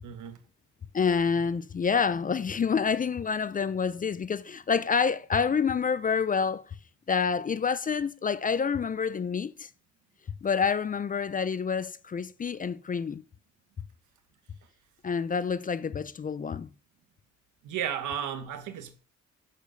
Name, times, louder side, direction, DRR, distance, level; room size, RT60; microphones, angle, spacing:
voice 1, 0.0-0.4 17.6-19.0, right 9 dB, 80° right, 1.5 m, -34 dB
voice 2, 0.9-6.6 7.1-9.7 10.4-13.2 15.0-16.7, left 6 dB, 30° left, 0.4 m, -28 dB
6.5 x 5.0 x 6.5 m
cardioid pair, 90°, 30 cm